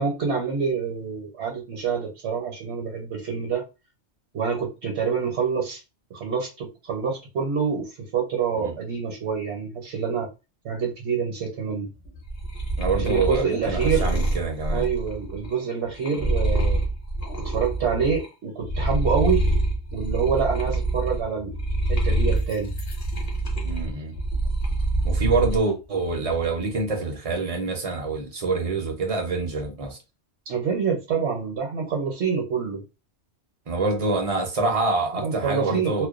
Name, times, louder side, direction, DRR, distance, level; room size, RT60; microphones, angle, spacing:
voice 1, 0.0-3.7 4.3-5.8 6.1-10.3 10.6-11.9 13.0-14.2 14.7-16.8 17.4-19.5 19.9-21.5 21.9-22.7 30.5-32.8 35.1-36.1, right 6 dB, 65° right, 1.0 m, -26 dB
sound 1, 12.0-18.3 18.6-25.6 26.0-26.7, right 2 dB, 35° left, 0.8 m, -26 dB
voice 2, 12.8-14.9 23.6-24.1 25.0-30.0 33.7-36.1, right 3 dB, 40° right, 0.6 m, -26 dB
2.3 x 2.2 x 2.4 m
omnidirectional pair, 1.2 m